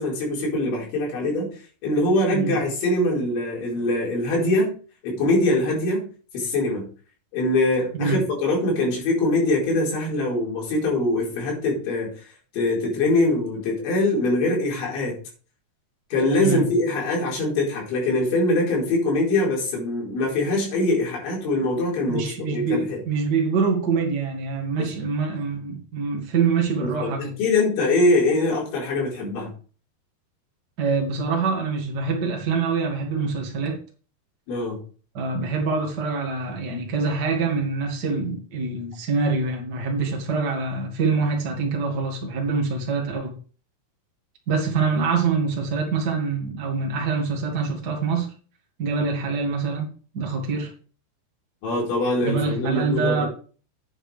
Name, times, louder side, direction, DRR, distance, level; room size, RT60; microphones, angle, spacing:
voice 1, 0.0-1.5 1.8-4.7 5.0-6.1 6.3-6.9 7.3-15.2 16.1-23.0 24.8-24.9 26.8-29.5 34.5-34.8 51.6-53.3, left 2 dB, 85° left, 6.8 m, -23 dB
voice 2, 22.1-27.3 30.8-33.8 35.1-43.3 44.5-48.3 48.8-50.7 52.2-53.2, right 4 dB, 45° right, 1.2 m, -25 dB
10.0 x 9.4 x 3.3 m
omnidirectional pair, 5.2 m